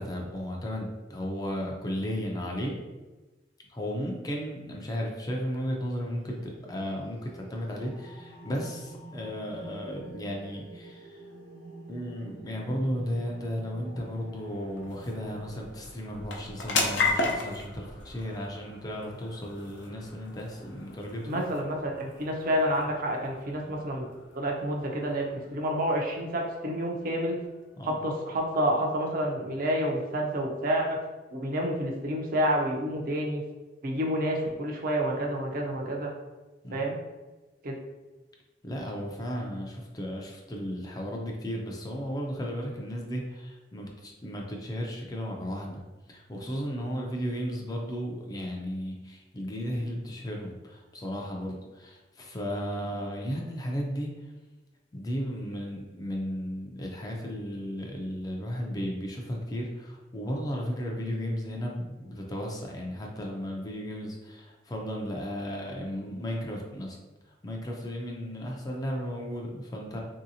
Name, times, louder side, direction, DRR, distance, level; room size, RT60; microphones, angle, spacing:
voice 1, 0.0-2.8 3.7-11.2 11.9-21.4 27.8-28.0 36.6-36.8 38.6-45.8 46.1-54.1 54.9-67.0 67.4-70.0, equal, 20° left, -1 dB, 0.4 m, -34 dB
sound 1, 5.7-15.6, right 2 dB, 70° right, 1.2 m, -49 dB
sound 2, 13.3-28.1, left 3 dB, 70° left, 0.5 m, -37 dB
voice 2, 21.3-24.1 24.3-25.3 25.5-27.4 27.8-31.0 31.3-33.4 33.8-36.1 36.7-37.0 37.6-37.7, equal, 50° right, 0 dB, 0.5 m, -29 dB
3.1 x 2.7 x 2.6 m, 1.2 s
head